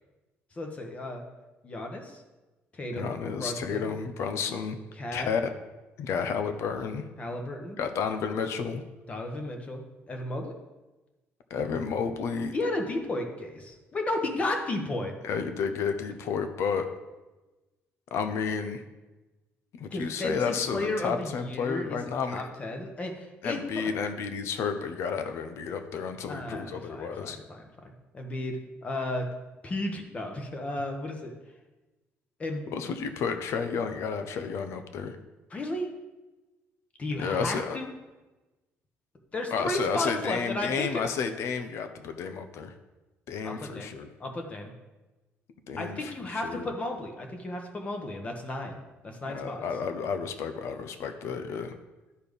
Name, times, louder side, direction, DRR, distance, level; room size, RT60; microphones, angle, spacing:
voice 1, 0.5-1.2 1.6-2.2 2.7-3.1 3.4-3.9 5.0-5.3 7.2-7.8 9.1-10.6 12.5-15.1 19.9-23.9 26.3-27.7 28.1-29.2 29.6-31.3 32.4-32.9 35.5-35.9 37.0-37.9 39.3-41.1 43.4-43.9 44.2-44.7 45.8-48.8 49.0-49.6, left 1 dB, 25° left, 3 dB, 1.3 m, -33 dB
voice 2, 3.0-4.8 5.1-5.5 6.0-7.0 7.8-8.8 11.5-12.5 15.2-16.9 18.1-18.8 19.7-22.4 23.4-27.4 32.7-35.2 37.2-37.8 39.5-42.7 43.3-44.1 45.7-46.7 49.3-51.7, left 6 dB, 65° left, 8 dB, 0.8 m, -31 dB
12.0 x 4.4 x 5.3 m, 1.1 s
cardioid pair, 145°, 5 cm